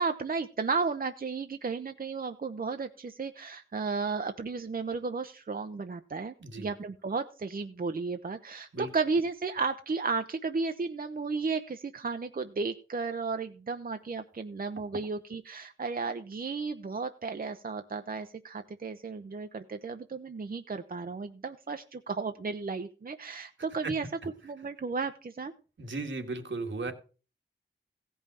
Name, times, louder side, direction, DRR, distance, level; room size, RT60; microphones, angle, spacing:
voice 1, 0.0-24.0 24.4-25.5, right 4 dB, 50° right, 8 dB, 0.7 m, -34 dB
voice 2, 25.8-26.9, right 3 dB, 80° right, 4 dB, 1.9 m, -35 dB
16.0 x 5.5 x 6.2 m, 0.37 s
wide cardioid pair, 95°, 19 cm